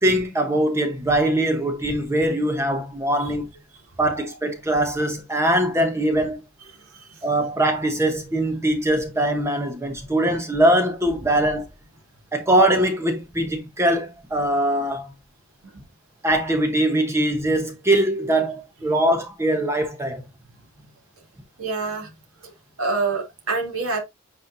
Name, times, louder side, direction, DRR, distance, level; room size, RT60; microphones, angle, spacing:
voice 1, 0.0-3.5 4.0-6.4 7.2-11.7 12.3-15.1 16.2-20.2, right 1 dB, 15° right, 0.9 m, -22 dB
voice 2, 21.6-22.1 22.4-22.5 22.8-24.0, right 3 dB, 90° right, 2.3 m, -26 dB
9.2 x 4.3 x 2.6 m
head